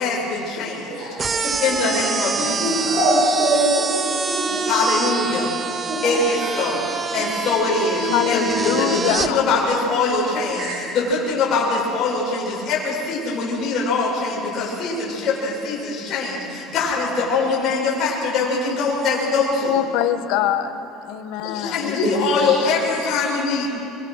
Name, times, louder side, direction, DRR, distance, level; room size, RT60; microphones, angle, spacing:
voice 1, 0.0-1.1 1.6-2.6 4.7-5.5 6.0-6.9 7.1-10.7 10.9-19.8 21.5-23.7, left 3 dB, 35° left, -5 dB, 7.1 m, -23 dB
sound 1, 1.2-9.3, right 5 dB, 20° right, 0.7 m, -26 dB
voice 2, 1.4-1.9 2.4-4.0 4.3-4.6 10.5-10.7 21.4-21.7 22.0-22.5, right 1 dB, 40° right, -6 dB, 6.5 m, -23 dB
voice 3, 8.0-9.4 9.7-9.8 19.6-20.8 21.0-22.8 23.0-23.7, left 11 dB, 65° left, 8 dB, 1.5 m, -24 dB
24.5 x 23.5 x 6.5 m, 2.8 s
cardioid pair, 175°, 0 cm